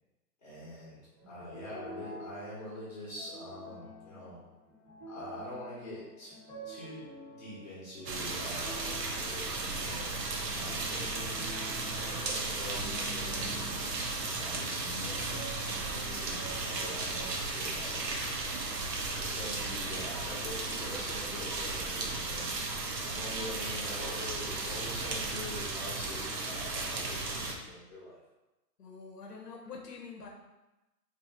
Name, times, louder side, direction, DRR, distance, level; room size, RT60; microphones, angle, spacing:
voice 1, 0.4-4.4 5.1-6.3 6.6-7.1 7.4-10.1 10.5-11.4 11.8-13.8 14.2-18.7 19.2-22.6 23.0-28.2, left 1 dB, 25° left, -8 dB, 0.8 m, -45 dB
sound 1, 1.1-10.1 10.6-19.5 19.8-20.9, equal, 10° right, 0.6 m, -48 dB
sound 2, 8.1-27.5, right 3 dB, 80° right, 0.8 m, -35 dB
voice 2, 28.8-30.3, left 5 dB, 70° left, 0 dB, 0.8 m, -45 dB
3.1 x 2.4 x 4.1 m, 1.0 s
hypercardioid pair, 165°, 49 cm